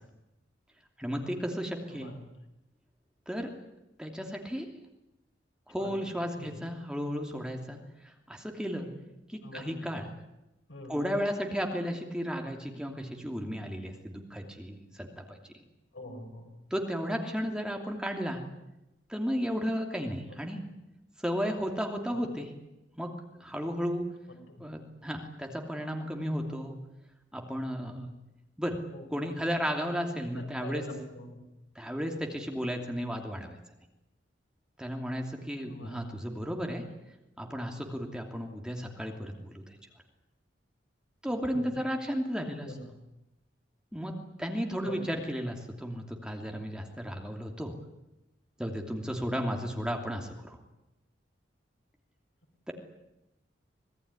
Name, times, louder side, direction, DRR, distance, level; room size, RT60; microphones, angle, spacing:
voice 1, 1.0-2.1 3.3-3.5 4.0-4.7 5.7-7.8 8.3-8.9 9.3-10.1 10.9-15.4 16.7-18.4 19.1-20.6 21.2-22.5 22.9-23.1 23.4-24.1 24.6-26.8 27.3-28.1 28.6-28.7 29.1-30.8 31.7-33.6 34.8-36.8 37.4-39.8 41.2-42.7 43.9-47.7 48.6-50.6 52.7-52.8, equal, 5° right, 2 dB, 2.9 m, -34 dB
voice 2, 1.9-2.3 5.7-5.9 6.4-6.6 9.4-9.8 10.7-11.0 15.9-16.5 22.1-22.3 24.5-24.7 28.9-29.1 30.4-31.4 35.6-36.1 41.5-41.7 42.6-42.9 44.8-45.1 49.7-49.8, left 1 dB, 85° left, 3 dB, 6.1 m, -44 dB
26.0 x 19.5 x 9.8 m, 0.93 s
head